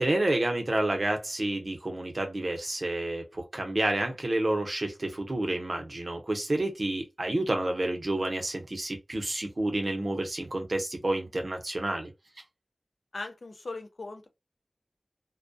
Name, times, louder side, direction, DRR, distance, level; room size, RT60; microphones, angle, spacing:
voice 1, 0.0-12.1, right 1 dB, 55° right, 0.7 m, -29 dB
voice 2, 13.1-14.3, left 3 dB, 90° left, 0.6 m, -39 dB
2.2 x 2.1 x 2.6 m
wide cardioid pair, 60°, 0 cm